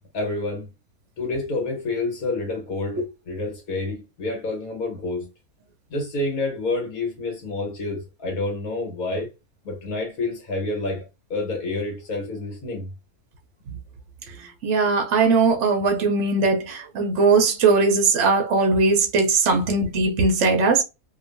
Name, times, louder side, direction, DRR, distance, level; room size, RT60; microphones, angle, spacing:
voice 1, 0.1-0.7 1.2-5.3 5.9-9.3 9.6-11.0 11.3-12.9 19.5-19.7, left 2 dB, 70° left, 1.4 m, -28 dB
voice 2, 14.6-20.8, right 4 dB, 65° right, 0.8 m, -19 dB
2.9 x 2.3 x 2.4 m
omnidirectional pair, 1.6 m